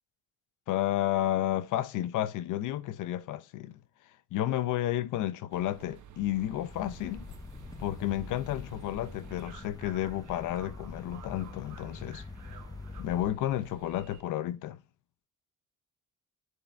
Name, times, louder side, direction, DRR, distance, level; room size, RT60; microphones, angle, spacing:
voice 1, 0.7-3.8 4.3-7.2 7.8-12.2 13.0-14.8, left 13 dB, 85° left, 0.7 m, -31 dB
sound 1, 5.5-14.2, right 7 dB, 75° right, 1.1 m, -52 dB
sound 2, 6.7-13.3, left 3 dB, 10° left, 0.5 m, -45 dB
9.7 x 4.3 x 3.4 m
cardioid pair, 90°, 30 cm